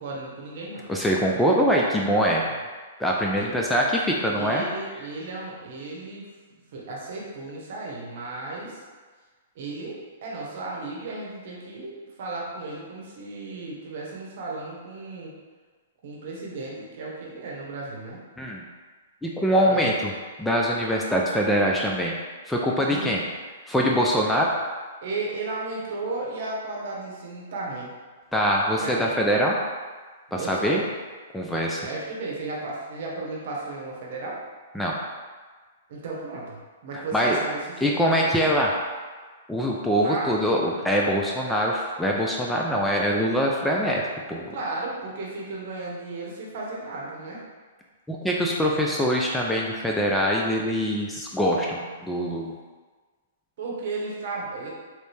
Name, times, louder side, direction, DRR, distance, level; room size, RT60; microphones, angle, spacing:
voice 1, 0.0-0.8 3.3-3.6 4.2-6.3 6.7-8.8 9.5-15.4 16.0-18.2 19.7-19.9 22.9-23.1 23.9-24.0 25.0-27.9 28.7-29.1 30.3-30.8 31.8-34.4 35.9-38.3 39.9-40.3 44.5-47.4 53.6-54.7, right 3 dB, 60° right, -3 dB, 0.9 m, -34 dB
voice 2, 0.9-2.5 3.0-4.6 18.4-18.6 19.2-20.1 20.4-22.1 22.5-23.2 23.7-24.5 28.3-29.6 30.3-30.8 31.3-31.9 34.7-35.0 36.9-37.4 37.8-38.7 39.5-44.0 44.3-44.5 48.1-52.5, equal, 5° left, -2 dB, 0.3 m, -23 dB
3.1 x 2.7 x 3.3 m, 1.4 s
hypercardioid pair, 145°, 0 cm